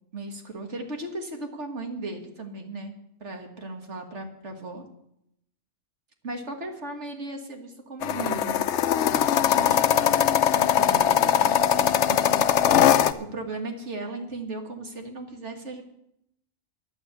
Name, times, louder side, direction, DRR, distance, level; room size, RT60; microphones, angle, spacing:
voice 1, 0.1-2.9 3.2-4.8 6.2-8.6 9.2-10.3 10.5-12.5 13.2-15.8, right 2 dB, 75° right, 4 dB, 1.9 m, -36 dB
sound 1, 8.0-13.1, left 10 dB, 80° left, 0.9 m, -21 dB
11.5 x 8.4 x 8.1 m, 0.78 s
omnidirectional pair, 1.2 m